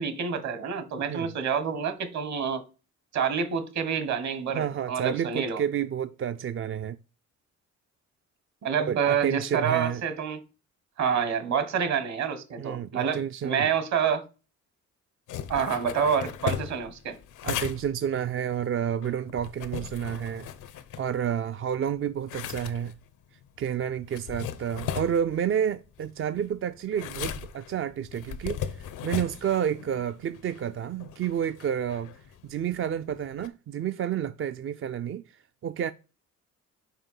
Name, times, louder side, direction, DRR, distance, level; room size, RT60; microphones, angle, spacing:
voice 1, 0.0-2.6 3.1-5.6 8.6-10.4 11.0-14.2 15.5-17.2, right 7 dB, 65° right, 1.5 m, -28 dB
voice 2, 4.5-7.0 8.8-10.0 12.6-13.7 17.4-20.5 21.0-22.9 23.6-32.1 32.4-35.4 35.6-35.9, right 9 dB, 45° right, 0.4 m, -30 dB
sound 1, 15.3-21.5 21.9-33.5, left 9 dB, 85° left, 0.9 m, -38 dB
5.7 x 4.7 x 5.6 m
cardioid pair, 90°, 30 cm